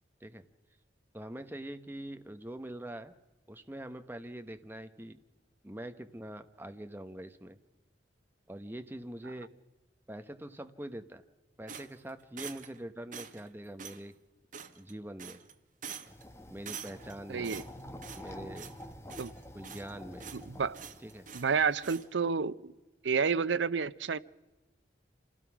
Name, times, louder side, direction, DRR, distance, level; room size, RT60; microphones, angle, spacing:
voice 1, 1.1-3.1 3.5-5.2 5.6-7.6 8.5-9.5 10.1-11.2 11.6-14.1 14.7-15.4 16.5-17.6 18.2-18.7 19.5-20.3 21.0-21.3, right 1 dB, 10° right, 1.0 m, -44 dB
sound 1, 11.7-12.8 13.1-13.5 13.8-14.0 14.5-14.9 15.2-15.5 15.8-16.2 16.6-17.1 17.4-18.3 18.5-18.8 19.1-19.9 20.2-20.4 20.7-21.5 21.8-22.1, right 7 dB, 45° right, 1.2 m, -45 dB
sound 2, 16.0-22.0, left 1 dB, 15° left, 1.4 m, -49 dB
voice 2, 17.3-17.6 19.2-19.3 20.3-20.8 21.3-22.5 23.0-24.2, right 5 dB, 80° right, 0.6 m, -30 dB
27.0 x 16.5 x 6.1 m
head